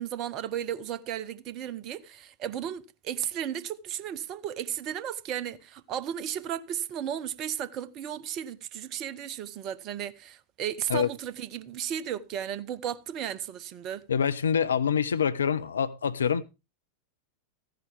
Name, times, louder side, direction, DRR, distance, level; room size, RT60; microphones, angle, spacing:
voice 1, 0.0-14.0, right 10 dB, 35° right, 0.7 m, -34 dB
voice 2, 14.1-16.4, left 7 dB, 70° left, 0.6 m, -25 dB
14.0 x 10.5 x 3.5 m
figure-of-eight pair, 90°, 0 cm